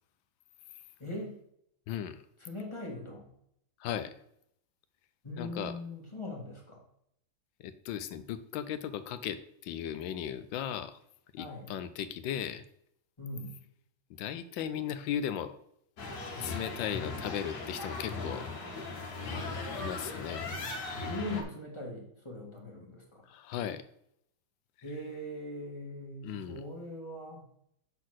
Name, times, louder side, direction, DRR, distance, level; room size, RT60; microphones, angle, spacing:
voice 1, 1.0-1.3 2.4-3.3 5.2-6.8 11.4-11.7 13.2-13.6 21.0-23.2 24.8-27.4, left 1 dB, 15° left, -2 dB, 1.5 m, -40 dB
voice 2, 1.9-2.2 3.8-4.1 5.4-5.7 7.6-11.0 11.3-12.6 14.2-15.6 16.4-18.5 19.8-20.5 23.3-23.8 26.2-26.6, left 9 dB, 75° left, 11 dB, 1.2 m, -36 dB
sound 1, 16.0-21.4, left 3 dB, 55° left, 1.6 m, -38 dB
6.5 x 4.1 x 6.1 m, 0.72 s
omnidirectional pair, 2.1 m